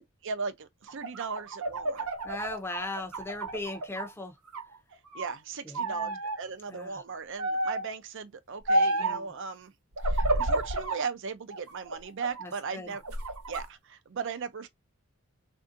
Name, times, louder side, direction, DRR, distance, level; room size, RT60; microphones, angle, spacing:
voice 1, 0.0-2.1 5.1-9.7 10.0-13.0 13.5-14.7, right 5 dB, 55° right, 0.5 m, -37 dB
sound 1, 0.9-4.1 4.5-5.4 5.8-6.4 7.4-7.9 8.7-9.2 10.0-11.0 11.5-12.5 12.9-13.6, right 1 dB, 85° right, 1.0 m, -30 dB
voice 2, 2.2-4.4 5.6-6.2 6.7-7.0 9.0-9.3 12.4-12.9, left 2 dB, 10° left, 0.7 m, -38 dB
3.5 x 2.7 x 2.5 m
head